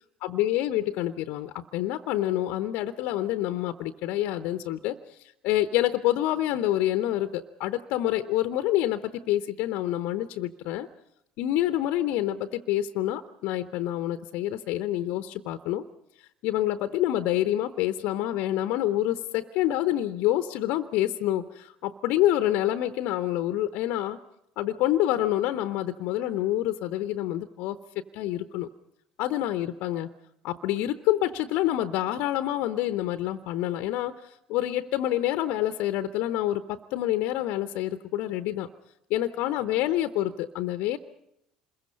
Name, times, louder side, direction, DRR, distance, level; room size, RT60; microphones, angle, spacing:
voice 1, 0.2-10.9 11.4-15.8 16.4-24.2 24.6-27.8 28.1-28.7 29.2-30.1 30.4-38.7 39.1-41.0, left 13 dB, 55° left, 11 dB, 0.8 m, -27 dB
27.5 x 21.5 x 5.4 m, 0.78 s
figure-of-eight pair, 60°, 3 cm